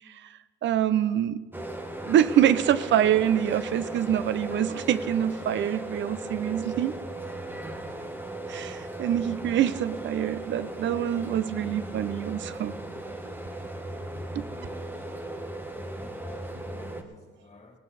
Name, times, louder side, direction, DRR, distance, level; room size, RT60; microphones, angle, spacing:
voice 1, 0.6-1.4 2.0-6.9 8.5-12.7 14.4-14.5, right 10 dB, 65° right, 15 dB, 0.6 m, -25 dB
sound 1, 1.5-17.0, right 1 dB, 10° right, 1.4 m, -37 dB
voice 2, 14.4-14.7 15.8-16.5 16.7-17.7, left 3 dB, 30° left, 4 dB, 2.3 m, -51 dB
18.0 x 12.0 x 4.1 m, 1.4 s
cardioid pair, 90°, 20 cm